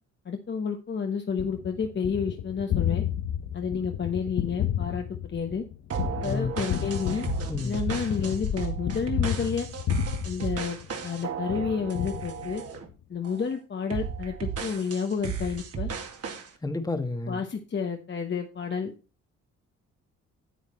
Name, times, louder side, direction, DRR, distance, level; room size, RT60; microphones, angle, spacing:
voice 1, 0.2-3.0 3.5-5.6 6.2-7.2 7.6-9.7 10.2-10.8 11.0-12.6 13.1-15.9 17.3-18.9, left 6 dB, 35° left, 1.2 m, -30 dB
Gunshot gunfire, 1.4-11.1 11.5-12.9, left 10 dB, 70° left, 1.1 m, -32 dB
sound 1, 5.9-12.9 13.2-13.5 13.9-16.5, right 6 dB, 50° right, 2.2 m, -35 dB
voice 2, 7.5-7.8 16.6-17.4, left 3 dB, 10° left, 1.4 m, -31 dB
9.5 x 8.1 x 4.3 m
cardioid pair, 90°, 30 cm